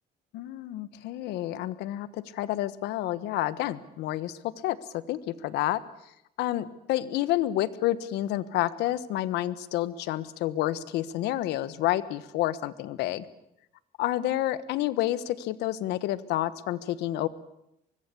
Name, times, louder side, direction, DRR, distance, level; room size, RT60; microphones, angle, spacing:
voice 1, 0.3-5.8 6.4-13.3 14.0-17.3, left 14 dB, 85° left, 15 dB, 1.4 m, -29 dB
24.0 x 22.0 x 8.4 m, 0.81 s
cardioid pair, 110°, 17 cm